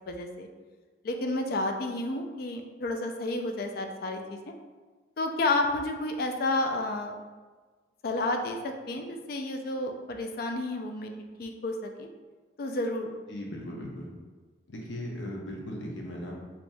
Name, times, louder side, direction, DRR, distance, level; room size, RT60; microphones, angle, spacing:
voice 1, 0.1-0.5 1.0-4.5 5.2-7.1 8.0-11.1 11.4-12.1 12.6-13.1, left 2 dB, 55° left, 4 dB, 0.3 m, -31 dB
voice 2, 13.3-14.1 14.7-16.3, equal, 85° left, -1 dB, 0.7 m, -37 dB
3.3 x 2.9 x 2.6 m, 1.4 s
head